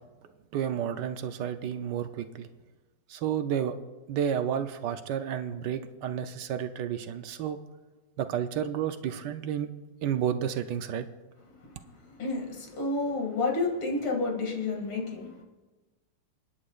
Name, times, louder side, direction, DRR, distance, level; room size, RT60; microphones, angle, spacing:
voice 1, 0.5-2.5 3.1-3.8 4.1-7.6 8.2-9.7 10.0-11.1, right 9 dB, 70° right, 9 dB, 1.1 m, -31 dB
voice 2, 12.1-15.3, left 3 dB, 80° left, 0 dB, 3.1 m, -30 dB
28.5 x 9.7 x 2.4 m, 1.2 s
omnidirectional pair, 2.3 m